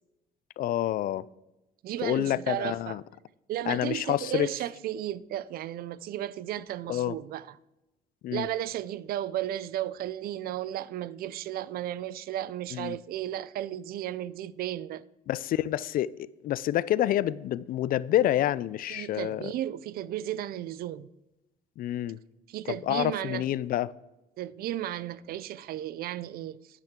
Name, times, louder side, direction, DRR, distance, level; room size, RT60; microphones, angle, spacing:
voice 1, 0.6-1.3 2.0-3.0 3.7-4.5 6.9-7.2 8.2-8.5 12.7-13.0 15.3-19.5 21.8-22.2 22.7-23.9, left 12 dB, 55° left, 0.4 m, -28 dB
voice 2, 1.8-3.0 3.5-7.5 8.3-15.0 18.9-21.1 22.5-23.4 24.4-26.8, right 12 dB, 65° right, 0.4 m, -34 dB
10.5 x 10.5 x 3.7 m
cardioid pair, 110°, 17 cm